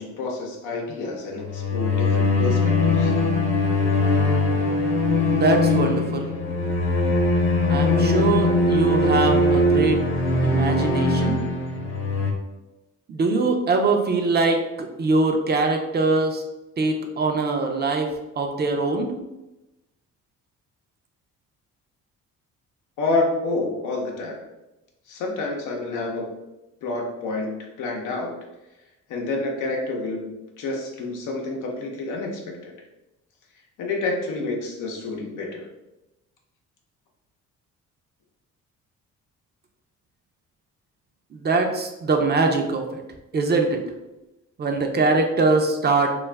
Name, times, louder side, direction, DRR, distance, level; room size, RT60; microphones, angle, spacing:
voice 1, 0.0-3.1 23.0-24.5 25.1-26.3 26.8-28.3 29.1-32.7 33.8-35.7, left 3 dB, 85° left, 0 dB, 0.7 m, -28 dB
sound 1, 1.4-12.3, left 2 dB, 45° left, 0.9 m, -21 dB
voice 2, 5.3-6.3 7.7-10.0 10.4-11.4 13.1-16.4 16.8-19.1 41.3-43.0 43.3-43.8 44.6-46.2, right 3 dB, 35° right, 4 dB, 0.4 m, -22 dB
2.5 x 2.4 x 3.2 m, 0.99 s
cardioid pair, 90°, 30 cm